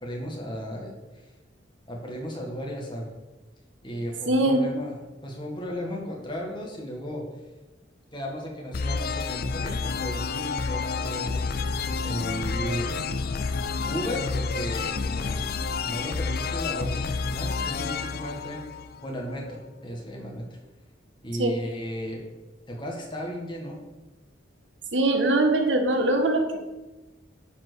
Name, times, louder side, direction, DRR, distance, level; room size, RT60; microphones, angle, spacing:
voice 1, 0.0-1.2 1.9-3.1 3.8-7.3 8.1-13.0 13.9-15.5 15.8-18.6 19.0-20.5 21.2-22.2 22.7-23.8, equal, 25° left, -1 dB, 1.8 m, -35 dB
voice 2, 4.3-4.6 21.4-21.5 24.9-26.6, right 2 dB, 80° right, 4 dB, 1.4 m, -22 dB
sound 1, 8.7-19.3, left 4 dB, 50° left, 0.5 m, -29 dB
10.0 x 4.6 x 6.4 m, 1.1 s
head